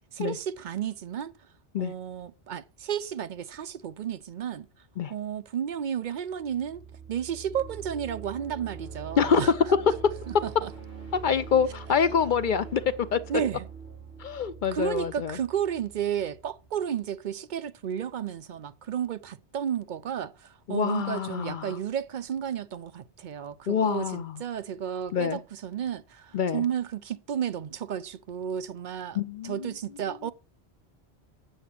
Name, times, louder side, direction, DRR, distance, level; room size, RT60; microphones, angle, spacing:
voice 1, 0.1-1.3 1.8-4.7 5.1-6.8 7.1-9.5 10.3-10.7 13.3-13.7 14.7-30.3, right 9 dB, 55° right, 0.6 m, -32 dB
sound 1, 6.3-17.0, right 6 dB, 70° right, 5.2 m, -43 dB
voice 2, 9.2-10.0 11.2-12.8 13.1-13.2 14.2-15.4 20.7-21.7 23.7-24.3 25.1-25.4 26.3-26.6 29.2-29.7, left 6 dB, 55° left, 0.6 m, -25 dB
8.0 x 6.7 x 5.8 m
omnidirectional pair, 1.1 m